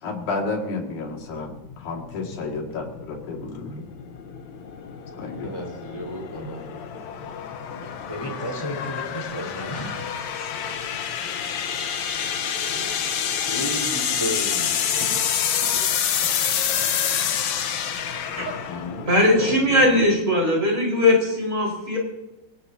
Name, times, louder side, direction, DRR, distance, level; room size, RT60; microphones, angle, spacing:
voice 1, 0.0-3.8 5.2-5.5 6.4-6.5 7.2-7.9 11.5-12.0 18.4-19.1 19.4-20.0, left 3 dB, 85° left, 1 dB, 3.7 m, -33 dB
sound 1, 1.1-20.2, left 8 dB, 70° left, 2.3 m, -28 dB
voice 2, 5.4-6.7 7.2-7.5 7.8-11.0 12.7-15.3 15.6-15.9, equal, 10° left, 0 dB, 4.5 m, -34 dB
voice 3, 19.1-22.0, left 1 dB, 25° right, -2 dB, 5.0 m, -19 dB
25.5 x 18.0 x 2.8 m, 0.97 s
omnidirectional pair, 3.4 m